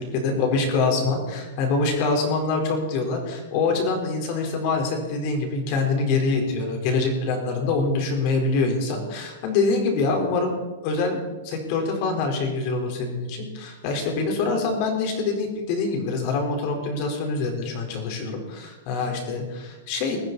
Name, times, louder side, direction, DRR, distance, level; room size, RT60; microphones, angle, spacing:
voice 1, 0.0-10.6 10.8-11.2 11.4-20.2, left 3 dB, 45° left, 2 dB, 4.4 m, -25 dB
20.5 x 14.5 x 4.2 m, 1.2 s
supercardioid pair, 150°, 0 cm